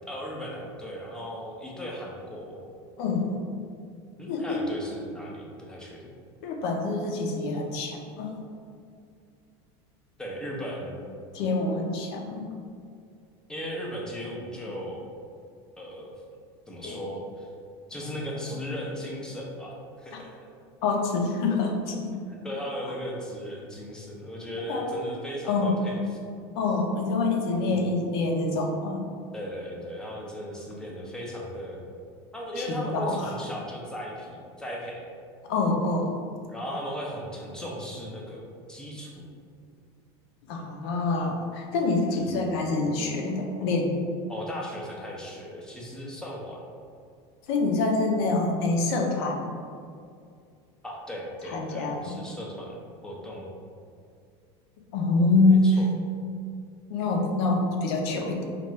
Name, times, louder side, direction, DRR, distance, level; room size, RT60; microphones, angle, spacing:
voice 1, 0.1-2.7 4.2-6.1 10.2-11.0 13.5-15.0 15.8-16.1 16.7-17.5 17.9-20.5 22.3-26.0 27.7-27.9 29.3-31.8 32.3-35.1 36.5-38.4 38.7-39.2 42.2-42.6 44.3-46.6 50.8-52.8 53.0-53.5 55.6-55.9, equal, 5° left, -3 dB, 0.6 m, -37 dB
voice 2, 3.0-3.4 4.3-4.7 6.4-8.3 11.3-12.5 16.8-17.0 20.1-20.2 20.8-22.1 22.8-22.9 24.7-24.9 25.5-25.8 26.6-29.1 32.6-33.3 35.5-36.2 40.5-44.0 47.5-49.5 51.5-52.2 54.9-55.6 56.9-58.5, left 3 dB, 70° left, 2 dB, 0.7 m, -26 dB
4.5 x 2.5 x 3.1 m, 2.3 s
supercardioid pair, 150°, 14 cm